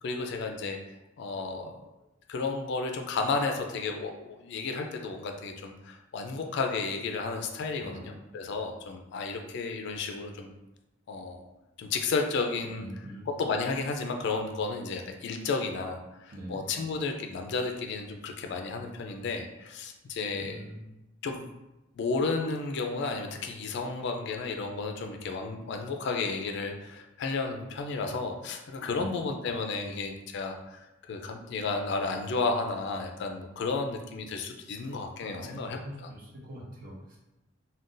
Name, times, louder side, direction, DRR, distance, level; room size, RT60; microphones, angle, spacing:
voice 1, 0.0-0.8 1.2-1.7 2.3-10.5 11.1-11.5 11.8-12.8 13.4-20.6 21.2-21.5 22.0-30.8 31.1-36.1, left 4 dB, 60° left, 4 dB, 0.3 m, -32 dB
voice 2, 7.7-8.1 12.6-13.3 16.3-16.6 20.3-20.8 28.9-29.1 34.8-37.2, equal, 45° right, -3 dB, 0.7 m, -44 dB
2.5 x 2.2 x 3.7 m, 0.97 s
head